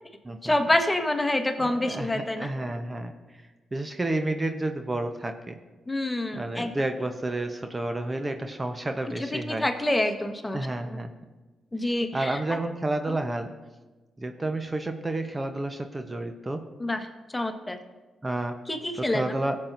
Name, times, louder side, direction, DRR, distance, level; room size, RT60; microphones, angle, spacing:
voice 1, 0.4-2.5 5.9-6.7 9.2-10.6 10.9-11.0 11.7-12.4 13.1-13.2 16.8-17.1 17.3-17.8 18.7-19.2, left 1 dB, 20° left, 6 dB, 1.3 m, -27 dB
voice 2, 1.6-3.1 3.7-5.6 6.3-9.7 10.5-11.1 12.1-13.5 14.2-16.6 18.2-18.5 19.0-19.6, right 2 dB, 30° right, 6 dB, 0.9 m, -30 dB
17.0 x 7.5 x 2.7 m, 1.2 s
hypercardioid pair, 40°, 0 cm